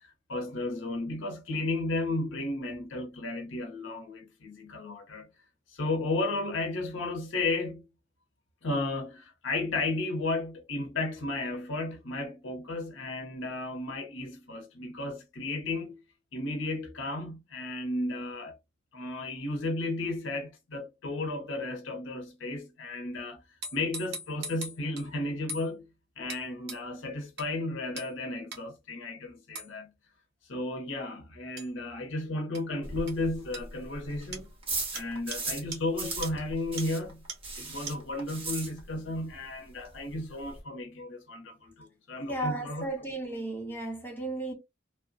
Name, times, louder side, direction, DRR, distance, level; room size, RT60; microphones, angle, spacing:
voice 1, 0.0-5.3 5.7-7.8 8.6-16.0 16.3-18.6 18.9-23.4 23.7-25.9 26.2-29.9 30.4-34.5 34.9-37.2 37.6-42.9, left 2 dB, 65° left, 0.7 m, -34 dB
sound 1, 23.6-25.1 25.5-25.7 26.3-26.4 26.7-26.8 27.4-27.5 28.0-28.1 28.5-28.6 29.6-29.7 31.6-31.7 32.6-32.7 33.1-33.2 33.5-33.6 34.3-34.5 35.0-35.1 35.3-35.4 35.7-35.8 36.2-36.3 36.8-36.9 37.3-37.4 37.9-38.0, right 3 dB, 55° right, 1.0 m, -39 dB
sound 2, 32.8-35.7 36.0-39.2 39.4-39.5 39.9-40.0 40.1-40.6, right 3 dB, 30° right, 1.1 m, -37 dB
voice 2, 42.3-44.5, right 2 dB, 10° left, 0.9 m, -34 dB
3.2 x 2.1 x 2.5 m
head